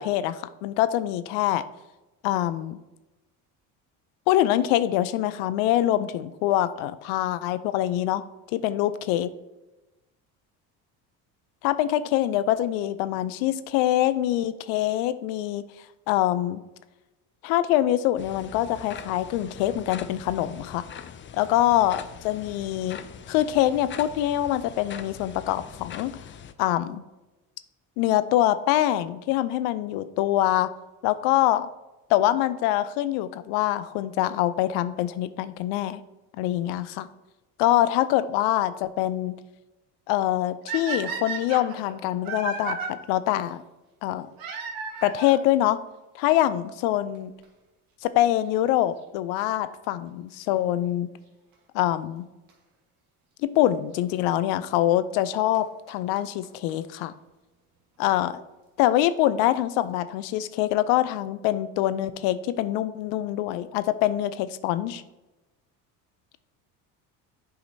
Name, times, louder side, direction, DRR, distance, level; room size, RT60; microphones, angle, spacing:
voice 1, 0.0-1.6 2.2-2.8 4.3-8.2 8.6-9.3 11.6-15.6 16.1-16.6 17.4-20.8 21.3-23.0 23.3-26.1 26.6-27.0 28.0-30.7 31.0-31.7 32.1-36.0 36.4-37.1 37.6-39.4 40.1-43.6 44.0-44.3 45.0-45.8 46.1-47.3 48.0-51.1 51.7-52.3 53.4-57.1 58.0-58.4 58.8-65.0, left 13 dB, 75° left, 14 dB, 0.5 m, -24 dB
sound 1, 18.2-26.5, left 8 dB, 30° left, 0.4 m, -43 dB
sound 2, 40.7-42.9 44.4-45.4 46.4-46.5 47.1-47.2 47.4-47.5 49.4-49.7 52.5-52.6 53.6-53.7 55.2-55.3 55.5-55.6 55.9-56.0 56.2-56.3 56.4-56.5 56.7-56.8 57.0-57.1, right 5 dB, 50° right, 1.7 m, -33 dB
8.1 x 4.9 x 2.7 m, 1.1 s
supercardioid pair, 80°, 42 cm